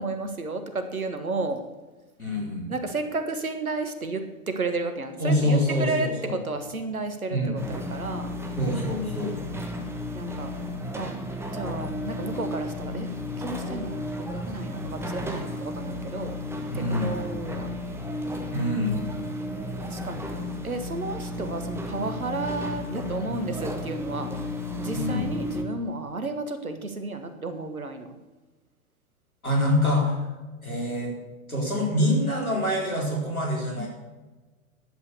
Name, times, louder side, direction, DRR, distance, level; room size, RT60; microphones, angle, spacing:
voice 1, 0.0-1.6 2.7-8.3 10.1-10.5 10.9-11.1 11.5-13.1 13.4-16.4 16.7-17.7 19.8-24.3 24.8-28.1 33.8-33.9, right 3 dB, 80° right, 8 dB, 1.6 m, -32 dB
voice 2, 2.2-2.7 5.2-6.3 7.3-7.5 8.6-9.4 16.7-17.1 18.5-19.1 24.9-25.3 29.4-30.3 30.6-31.1 31.5-33.9, left 1 dB, 85° left, -1 dB, 4.5 m, -25 dB
sound 1, 7.6-25.6, left 1 dB, 5° right, 1.3 m, -33 dB
11.5 x 8.4 x 6.7 m, 1.2 s
figure-of-eight pair, 100°, 42 cm